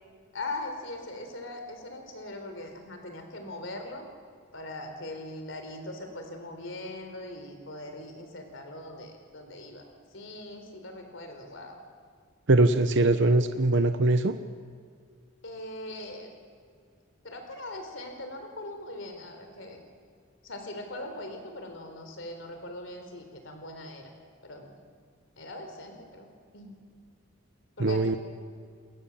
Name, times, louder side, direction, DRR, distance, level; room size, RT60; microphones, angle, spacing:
voice 1, 0.3-4.0 4.5-9.8 10.1-11.8 15.4-16.3 17.2-19.8 20.4-24.1 24.4-24.8 25.4-26.3 26.5-26.8 27.8-28.2, left 2 dB, 65° left, 5 dB, 4.0 m, -40 dB
voice 2, 12.5-14.4 27.8-28.2, right 2 dB, 60° right, 9 dB, 1.0 m, -22 dB
29.0 x 22.5 x 7.4 m, 2.1 s
head